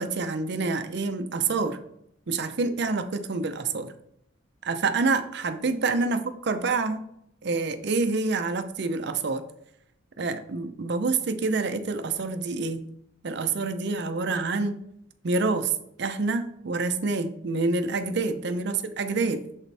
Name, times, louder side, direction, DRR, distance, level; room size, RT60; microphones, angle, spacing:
voice 1, 0.0-1.8 2.3-3.9 4.6-7.1 7.4-9.4 10.2-12.8 13.2-14.8 15.2-15.7 16.0-19.4, right 3 dB, 60° right, 9 dB, 0.6 m, -27 dB
7.1 x 4.1 x 3.4 m, 0.74 s
head